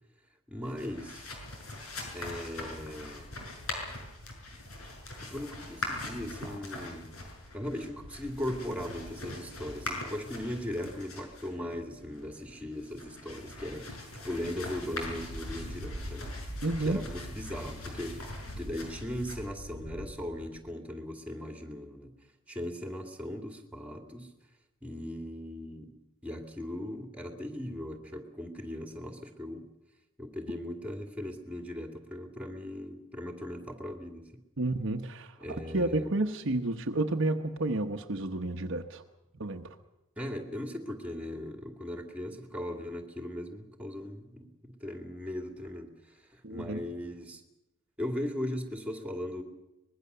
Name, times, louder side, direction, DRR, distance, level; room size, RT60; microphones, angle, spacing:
voice 1, 0.5-1.3 2.1-3.3 5.2-7.1 7.5-16.4 16.8-18.3 18.6-22.1 22.5-24.3 24.8-25.9 26.2-29.7 30.2-34.2 35.4-36.1 40.2-47.4 48.0-49.4, left 1 dB, 5° right, 2.4 m, -38 dB
sound 1, 0.6-20.6, left 2 dB, 75° left, 6.5 m, -41 dB
voice 2, 16.6-17.0 34.6-35.3 35.7-39.0 39.4-39.6 46.4-46.8, right 2 dB, 55° right, 1.1 m, -30 dB
24.5 x 21.0 x 6.8 m
head